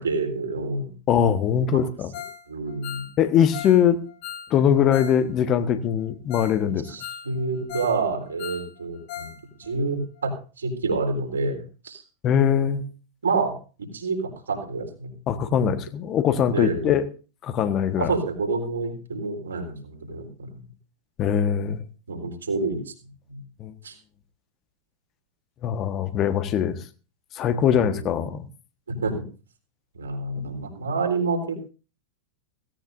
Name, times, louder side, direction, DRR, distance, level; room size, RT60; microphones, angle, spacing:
voice 1, 0.0-0.9 1.7-1.8 2.5-3.0 6.7-9.3 9.6-11.6 11.8-12.0 13.2-15.1 15.6-15.8 16.5-16.9 18.0-20.6 22.1-22.8 23.3-23.4 23.8-23.9 27.7-28.3 28.9-29.2 29.9-31.6, right 3 dB, 70° right, 3 dB, 3.7 m, -28 dB
voice 2, 1.1-2.1 3.2-4.0 4.5-6.8 12.2-12.8 15.3-17.0 17.4-18.1 21.2-21.8 23.6-23.7 25.6-26.8 27.3-28.4 30.4-30.5, left 9 dB, 35° left, 11 dB, 1.4 m, -21 dB
Ringtone, 2.1-2.4 2.7-5.2 5.5-5.6 6.0-6.1 6.3-6.6 6.9-8.0 8.2-9.4 9.6-9.7 10.2-10.3, left 10 dB, 50° left, 3.5 m, -38 dB
17.0 x 16.5 x 2.7 m, 0.36 s
figure-of-eight pair, 90°, 0 cm